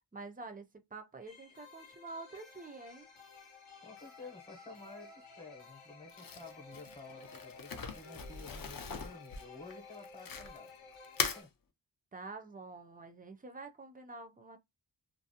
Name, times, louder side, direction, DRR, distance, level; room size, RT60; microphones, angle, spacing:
voice 1, 0.1-3.1 12.1-14.6, right 3 dB, 20° right, 0.4 m, -47 dB
sound 1, 1.2-11.4, left 4 dB, 85° left, 0.9 m, -54 dB
voice 2, 3.8-10.7 11.3-11.5, left 3 dB, 10° left, 0.8 m, -52 dB
Crumpling crinkling, 6.1-10.7 11.0-11.4, left 6 dB, 50° left, 0.5 m, -40 dB
2.5 x 2.0 x 2.7 m
wide cardioid pair, 95°, 46 cm